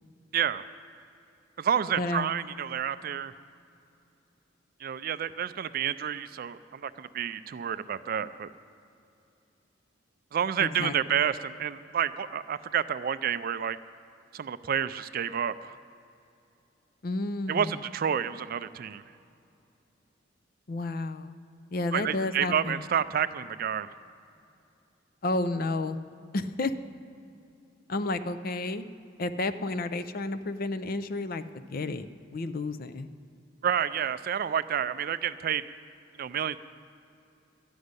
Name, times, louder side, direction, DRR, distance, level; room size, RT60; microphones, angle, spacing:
voice 1, 0.3-0.6 1.6-3.3 4.8-8.5 10.3-13.8 14.3-15.7 17.5-19.0 21.9-23.9 33.6-35.6 36.2-36.6, right 8 dB, 50° right, 14 dB, 0.3 m, -29 dB
voice 2, 1.9-2.3 10.6-11.2 17.0-17.8 20.7-21.4 21.7-22.8 25.2-26.0 26.3-26.7 27.9-28.9 29.2-32.1 32.3-33.1, left 2 dB, 45° left, 11 dB, 0.5 m, -31 dB
13.0 x 6.4 x 9.6 m, 2.6 s
head